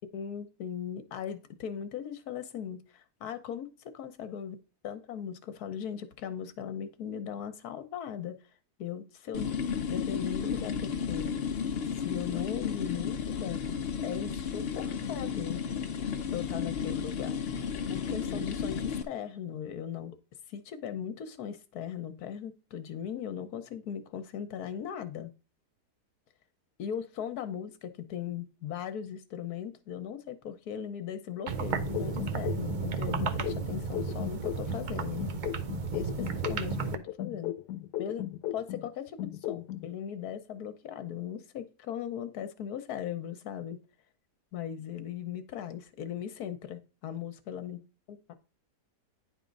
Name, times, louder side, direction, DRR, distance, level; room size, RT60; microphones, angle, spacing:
voice 1, 0.1-4.6 4.8-8.4 8.8-9.5 9.9-11.3 12.0-13.6 14.0-15.6 16.3-17.4 17.9-20.2 20.5-25.3 26.8-35.2 35.9-37.5 38.0-38.2 38.5-39.2 39.5-43.8 44.5-47.8 48.1-48.3, left 9 dB, 70° left, 1.4 m, -38 dB
sound 1, 9.3-19.0, left 7 dB, 50° left, 0.8 m, -33 dB
sound 2, 31.5-37.0, right 6 dB, 60° right, 0.4 m, -33 dB
sound 3, 31.9-34.9 35.2-38.9 39.2-39.9, left 13 dB, 90° left, 1.2 m, -36 dB
9.9 x 3.7 x 5.2 m
omnidirectional pair, 1.7 m